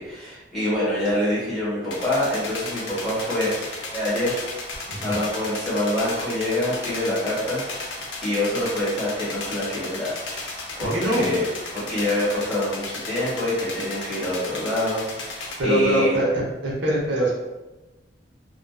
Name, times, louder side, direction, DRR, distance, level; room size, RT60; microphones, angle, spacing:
voice 1, 0.0-3.5 3.9-7.6 8.2-10.1 10.4-11.4 11.7-16.2, left 1 dB, ahead, -11 dB, 1.1 m, -26 dB
sound 1, 1.9-15.6, left 2 dB, 90° left, 0.6 m, -34 dB
voice 2, 10.8-11.2 15.6-17.3, right 1 dB, 70° right, -5 dB, 0.6 m, -22 dB
2.4 x 2.2 x 2.3 m, 1.1 s
head